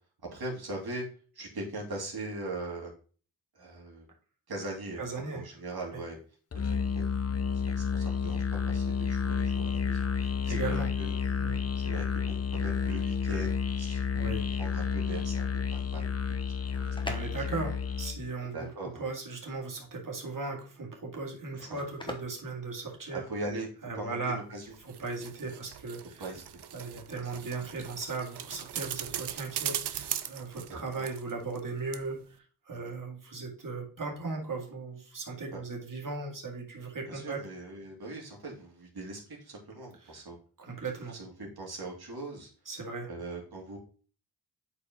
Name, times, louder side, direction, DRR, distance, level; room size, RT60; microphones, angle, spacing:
voice 1, 0.3-1.0 1.3-2.9 3.5-4.1 4.5-5.0 5.3-6.2 6.5-7.1 7.6-10.1 10.4-11.2 11.8-14.0 14.6-16.1 16.7-17.2 18.5-19.0 21.6-21.8 23.1-23.7 24.0-24.6 26.2-26.4 30.7-31.1 32.7-32.9 35.5-35.6 37.1-40.4 41.1-42.5 43.1-43.8, right 2 dB, 70° right, -2 dB, 2.7 m, -40 dB
voice 2, 5.0-5.5 10.2-10.9 11.2-11.6 14.1-14.5 17.0-23.3 23.8-24.4 24.8-26.2 26.7-37.4 40.0-40.2 40.6-41.2 42.7-43.1, right 3 dB, 55° right, 1 dB, 2.2 m, -37 dB
Musical instrument, 6.5-18.2, left 6 dB, 40° left, 0.7 m, -30 dB
sound 1, 16.6-23.5, left 1 dB, 10° left, 1.1 m, -46 dB
sound 2, 24.7-31.7 31.9-32.0, right 10 dB, 90° right, 0.6 m, -39 dB
8.3 x 4.9 x 3.0 m, 0.40 s
cardioid pair, 55°, 39 cm